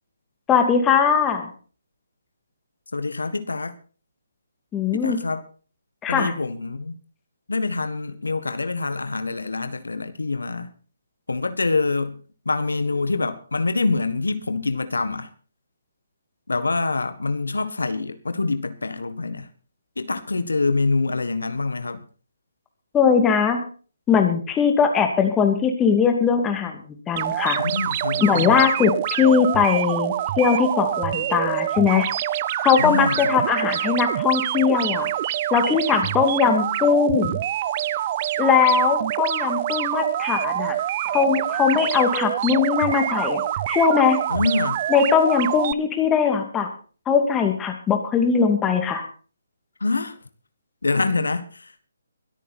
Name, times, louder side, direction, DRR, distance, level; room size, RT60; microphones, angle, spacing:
voice 1, 0.5-1.5 4.7-5.2 6.0-6.3 22.9-23.6 24.1-27.6 28.2-32.1 32.6-35.1 35.5-37.4 38.4-40.8 41.0-43.4 43.7-44.2 44.9-46.7 47.1-49.0, left 6 dB, 15° left, 2.5 m, -20 dB
voice 2, 2.9-3.8 4.9-5.4 6.1-7.0 7.5-10.7 11.3-12.2 12.4-15.3 16.5-19.5 20.0-22.0 27.6-28.6 32.8-33.5 44.3-44.8 49.8-50.2 50.8-51.7, left 3 dB, 85° left, 1.6 m, -25 dB
sound 1, 27.2-45.7, right 13 dB, 35° right, 0.6 m, -26 dB
23.0 x 9.2 x 4.3 m
figure-of-eight pair, 150°, 0 cm